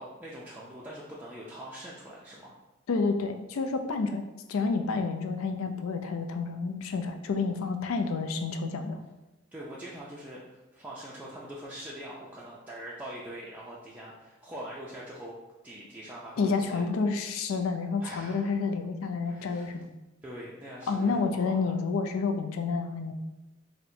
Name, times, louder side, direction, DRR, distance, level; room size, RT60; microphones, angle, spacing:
voice 1, 0.0-2.6 9.5-15.4 15.6-16.8 18.0-18.5 19.2-19.7 20.2-21.7, right 1 dB, 10° right, -7 dB, 0.3 m, -43 dB
voice 2, 2.9-4.2 4.5-9.0 16.4-19.9 20.9-23.1, left 4 dB, 80° left, 6 dB, 0.4 m, -29 dB
4.2 x 2.1 x 2.6 m, 1.1 s
head